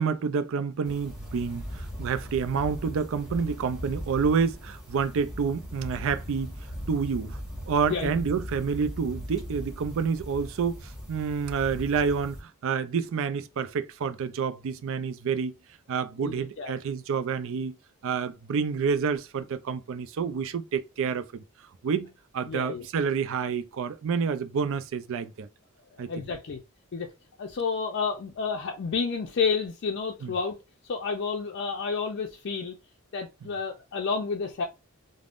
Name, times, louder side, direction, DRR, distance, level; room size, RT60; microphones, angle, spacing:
voice 1, 0.0-6.5 6.9-7.4 7.7-15.5 15.9-17.7 18.0-21.4 21.8-22.1 22.3-25.5 26.0-26.1 30.2-30.3, right 6 dB, 60° right, 0.4 m, -28 dB
sound 1, 0.8-12.4, equal, ahead, 1.2 m, -39 dB
voice 2, 16.2-16.7 22.5-22.9 26.1-26.6 26.9-27.1 27.4-30.6 30.8-32.8 33.1-34.6, left 5 dB, 50° left, 0.4 m, -30 dB
3.4 x 2.0 x 2.4 m
head